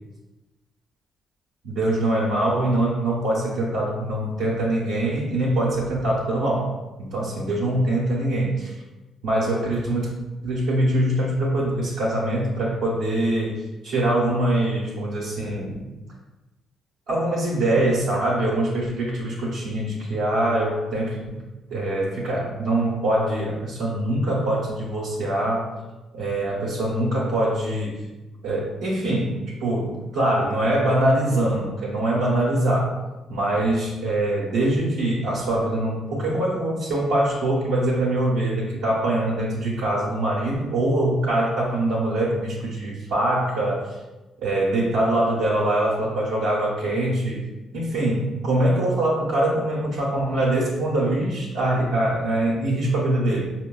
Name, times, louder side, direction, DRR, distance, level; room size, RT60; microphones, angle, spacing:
voice 1, 1.6-6.7 7.0-8.8 9.2-10.1 10.4-15.9 17.1-21.4 21.7-25.7 26.1-28.0 28.4-33.0 33.3-44.0 44.4-47.4 47.7-53.5, right 1 dB, 85° right, -7 dB, 0.7 m, -23 dB
4.6 x 2.1 x 2.2 m, 1.1 s
supercardioid pair, 65°, 0 cm